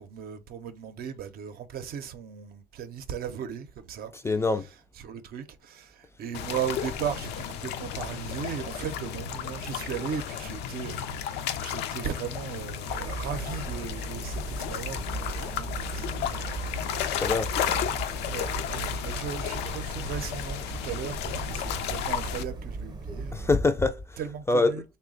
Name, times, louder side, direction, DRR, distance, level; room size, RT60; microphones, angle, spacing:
voice 1, 0.0-4.1 5.0-17.3 17.6-23.4 24.2-24.8, right 8 dB, 65° right, 0.6 m, -37 dB
voice 2, 4.2-4.7 17.1-17.5 23.3-24.2 24.5-24.8, left 3 dB, 15° left, 0.3 m, -24 dB
sound 1, 6.3-22.4, left 9 dB, 85° left, 0.4 m, -33 dB
sound 2, 12.9-23.6, right 3 dB, 25° right, 0.6 m, -37 dB
3.1 x 2.2 x 3.7 m
cardioid pair, 110°, 17 cm